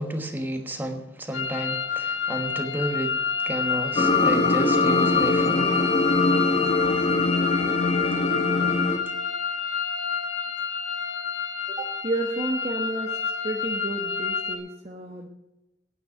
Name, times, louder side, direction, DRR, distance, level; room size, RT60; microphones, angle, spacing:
voice 1, 0.0-5.7, right 1 dB, 10° right, 5 dB, 1.2 m, -31 dB
sound 1, 1.3-14.6, left 6 dB, 80° left, 1.9 m, -29 dB
sound 2, 4.0-9.0, left 3 dB, 30° left, 1.0 m, -22 dB
voice 2, 11.7-13.1 13.4-15.3, right 2 dB, 35° right, 0 dB, 1.1 m, -31 dB
9.3 x 9.0 x 9.9 m, 0.95 s
head